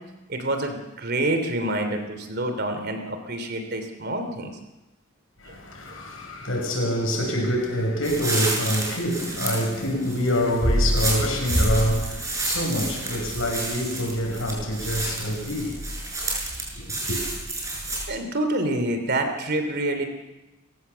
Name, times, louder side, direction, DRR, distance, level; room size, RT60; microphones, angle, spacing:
voice 1, 0.3-4.5 5.5-5.6 18.1-20.0, right 1 dB, 55° right, 3.0 m, -27 dB
voice 2, 5.4-15.9 17.1-17.2, equal, 85° left, 6.2 m, -26 dB
sound 1, 8.0-18.1, right 1 dB, 15° right, 6.8 m, -28 dB
29.5 x 16.0 x 6.9 m
head